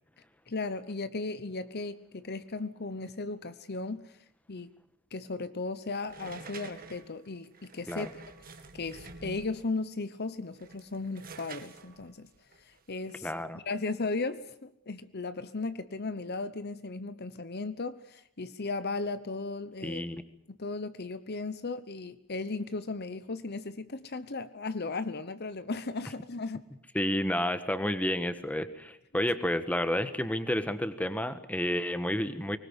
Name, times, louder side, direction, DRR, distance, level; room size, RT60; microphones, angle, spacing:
voice 1, 0.5-4.1 4.5-4.7 5.1-8.1 8.7-12.3 12.7-20.0 20.5-26.6, left 3 dB, 50° left, 13 dB, 1.0 m, -36 dB
sound 1, 6.1-9.7 10.4-13.4, right 3 dB, 40° right, 2.2 m, -48 dB
voice 2, 13.2-13.6 19.8-20.2 26.9-32.6, left 1 dB, 5° left, 11 dB, 1.4 m, -30 dB
24.0 x 20.5 x 8.1 m, 0.77 s
head